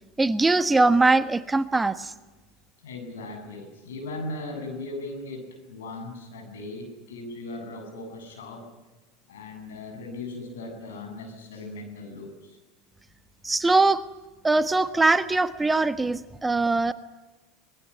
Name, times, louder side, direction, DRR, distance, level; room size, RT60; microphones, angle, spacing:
voice 1, 0.2-2.1 13.4-14.0 14.4-16.9, right 3 dB, 15° right, 12 dB, 1.3 m, -21 dB
voice 2, 2.8-8.7 9.3-12.6, left 2 dB, 90° left, 6 dB, 7.5 m, -38 dB
24.5 x 20.5 x 9.8 m, 1.2 s
supercardioid pair, 100°, 0 cm